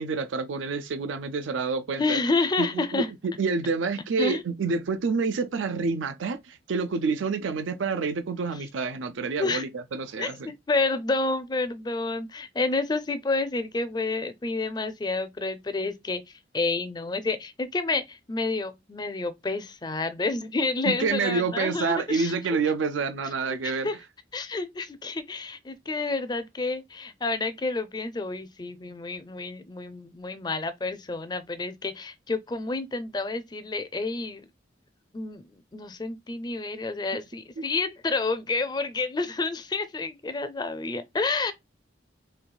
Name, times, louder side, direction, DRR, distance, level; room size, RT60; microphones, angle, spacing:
voice 1, 0.0-2.2 2.6-10.5 20.9-23.9, right 4 dB, 85° right, 0.5 m, -28 dB
voice 2, 2.0-3.1 4.2-4.4 9.4-9.6 10.2-16.2 16.5-22.3 23.5-24.0 24.3-34.4 35.1-41.5, left 3 dB, 20° left, 0.4 m, -29 dB
4.5 x 3.1 x 2.2 m
head